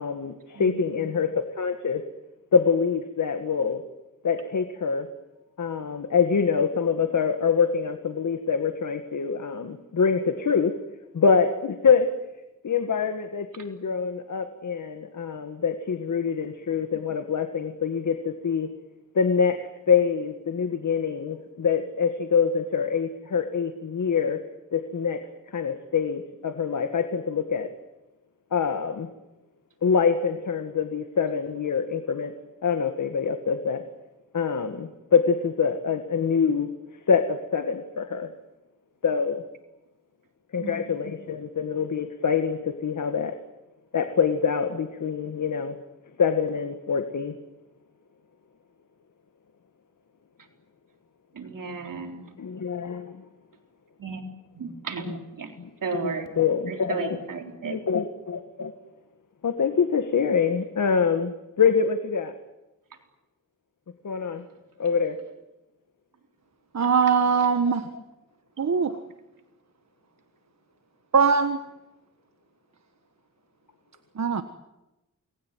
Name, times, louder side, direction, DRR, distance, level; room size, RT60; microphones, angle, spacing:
voice 1, 0.0-2.1 2.5-3.8 4.2-5.1 5.6-10.8 11.1-12.1 12.6-18.7 19.1-24.4 24.7-27.7 28.5-29.1 29.8-32.3 32.6-33.8 34.3-36.7 37.1-38.3 39.0-39.4 40.5-43.4 43.9-45.8 46.2-47.4 52.4-53.3 55.0-55.2 55.6-57.2 57.7-58.7 59.4-62.3 64.0-64.4 64.8-65.2, left 6 dB, 70° left, 7 dB, 2.0 m, -25 dB
voice 2, 0.6-1.0 40.6-40.7 51.4-52.3 54.0-54.2 54.5-55.5 55.8-56.3 56.7-57.7, right 5 dB, 85° right, 4 dB, 3.9 m, -34 dB
voice 3, 66.7-67.9 68.6-69.0 71.1-71.6 74.1-74.4, right 5 dB, 55° right, 8 dB, 1.5 m, -21 dB
28.5 x 21.0 x 9.3 m, 0.99 s
wide cardioid pair, 125°, 32 cm